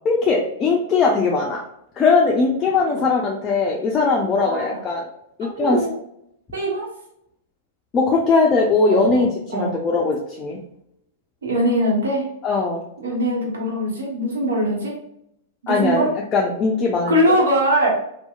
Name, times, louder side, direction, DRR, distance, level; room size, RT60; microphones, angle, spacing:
voice 1, 0.1-1.6 2.0-5.1 5.4-5.8 7.9-10.6 12.4-12.8 15.7-17.4, left 4 dB, 30° left, -1 dB, 0.4 m, -20 dB
voice 2, 4.4-4.8 5.4-5.9 6.5-6.9 8.9-9.8 11.4-12.3 13.0-15.0 15.6-16.1 17.1-17.9, equal, 80° right, -1 dB, 0.9 m, -22 dB
2.7 x 2.1 x 2.3 m, 0.76 s
hypercardioid pair, 110°, 0 cm